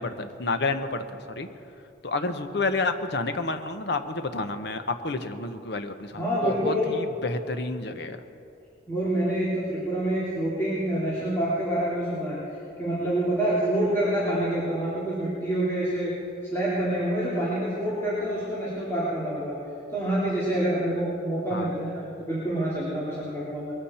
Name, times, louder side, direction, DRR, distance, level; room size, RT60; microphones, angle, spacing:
voice 1, 0.0-1.5 2.0-8.2 21.5-21.7, left 3 dB, 60° left, 8 dB, 0.9 m, -30 dB
voice 2, 6.2-6.9 8.9-12.4 12.8-16.1 16.4-19.5 19.9-23.7, right 1 dB, 15° left, -10 dB, 2.9 m, -27 dB
21.5 x 14.5 x 4.3 m, 2.7 s
head